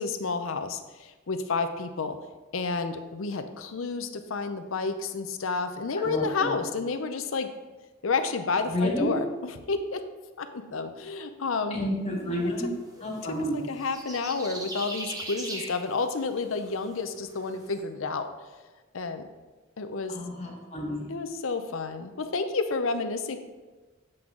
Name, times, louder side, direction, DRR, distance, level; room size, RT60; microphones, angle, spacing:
voice 1, 0.0-2.2 2.5-7.5 8.0-10.0 10.4-11.8 13.5-18.3 18.9-19.2 19.8-20.1 21.1-23.4, left 4 dB, 75° left, 8 dB, 0.6 m, -30 dB
voice 2, 6.0-6.6 8.7-9.2 11.7-12.7 13.0-13.6 20.1-21.1, equal, 30° left, -3 dB, 1.7 m, -30 dB
sound 1, 12.6-17.8, right 1 dB, 15° right, 0.8 m, -41 dB
7.7 x 5.9 x 3.7 m, 1.2 s
head